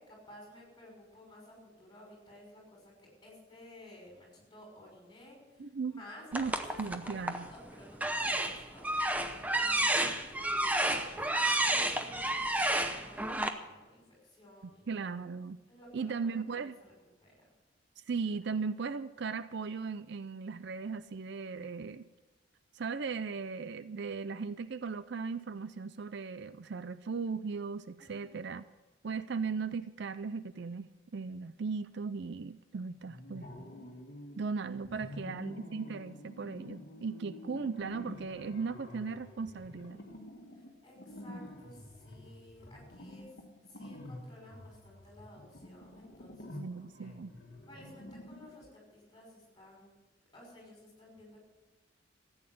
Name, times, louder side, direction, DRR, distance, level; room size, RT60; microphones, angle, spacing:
voice 1, 0.0-8.9 9.5-15.1 15.7-16.7 17.2-17.3 28.0-28.5 34.9-35.2 40.5-43.3 43.7-47.1 47.7-49.9 50.3-51.4, left 1 dB, 20° left, -2 dB, 5.8 m, -54 dB
voice 2, 5.6-5.9 6.3-7.5 14.9-15.6 15.9-16.8 18.1-22.1 22.7-28.6 29.0-33.5 34.4-40.0 46.6-47.3, right 5 dB, 55° right, 14 dB, 0.4 m, -37 dB
sound 1, 6.3-7.5 7.9-13.5, right 1 dB, 5° right, 0.7 m, -31 dB
sound 2, 33.1-34.4 34.8-48.7, left 1 dB, 50° left, 1.7 m, -48 dB
14.5 x 8.9 x 7.8 m, 1.2 s
head